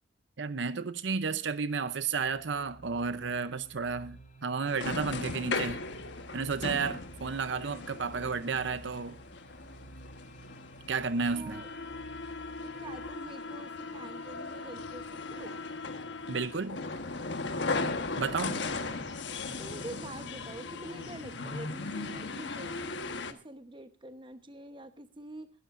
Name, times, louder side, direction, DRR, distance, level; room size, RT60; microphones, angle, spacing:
voice 1, 0.4-5.8 6.3-9.2 10.9-11.6 16.3-16.8 18.2-18.6, right 5 dB, 70° right, 0.7 m, -32 dB
sound 1, 2.1-13.1, right 2 dB, 40° left, 4.3 m, -52 dB
sound 2, 4.7-23.3, left 3 dB, 65° left, 1.3 m, -38 dB
voice 2, 11.3-11.7 12.6-15.6 18.3-19.1 19.6-25.5, right 1 dB, 25° right, 1.0 m, -46 dB
22.0 x 12.5 x 2.5 m
head